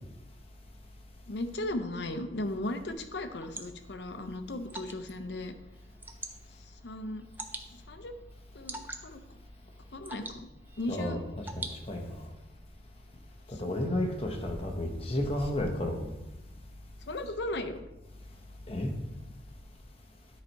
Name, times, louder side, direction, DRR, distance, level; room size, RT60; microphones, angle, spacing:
voice 1, 1.3-5.5 6.5-7.3 7.7-8.1 8.5-9.2 9.9-10.5 10.8-11.2 13.5-13.8 17.1-17.8, left 1 dB, 65° left, 8 dB, 0.6 m, -37 dB
Water / Drip, 2.9-12.3, right 2 dB, 10° right, 0.4 m, -47 dB
voice 2, 10.9-12.3 13.5-16.1 18.7-18.9, left 1 dB, 30° left, 3 dB, 0.9 m, -32 dB
9.7 x 4.1 x 4.5 m, 1.0 s
head